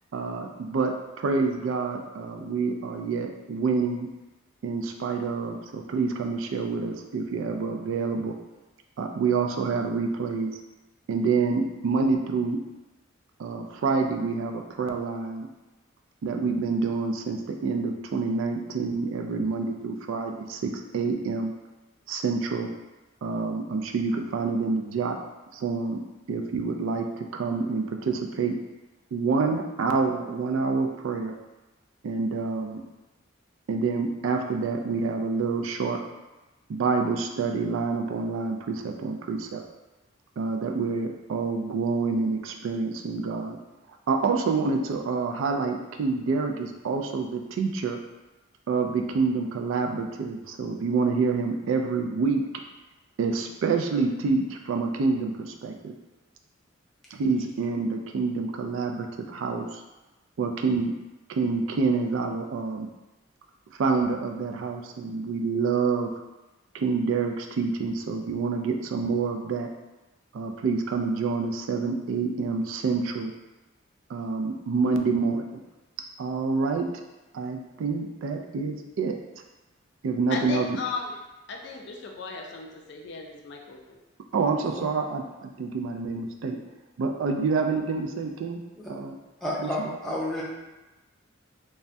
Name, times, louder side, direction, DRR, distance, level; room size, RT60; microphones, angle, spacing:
voice 1, 0.1-4.1 4.6-8.3 9.0-10.6 11.1-12.6 13.4-15.5 16.2-21.5 22.1-22.7 23.2-25.2 25.5-26.0 26.3-28.6 29.1-31.3 32.0-32.8 33.7-36.0 36.7-39.6 40.4-43.6 44.1-48.0 48.7-52.5 53.2-55.9 57.1-59.8 60.4-60.9 61.3-62.9 63.8-66.1 66.7-69.7 70.3-73.3 74.1-75.6 76.2-76.9 77.3-79.1 80.0-80.6 84.3-86.6 87.0-88.6 88.9-89.1 89.6-90.0, right 4 dB, 75° right, 4 dB, 0.3 m, -27 dB
voice 2, 80.3-81.1 81.5-84.0, left 4 dB, 55° left, 1 dB, 0.4 m, -36 dB
voice 3, 89.4-90.4, left 1 dB, ahead, -7 dB, 0.5 m, -30 dB
3.3 x 2.1 x 2.6 m, 1.1 s
head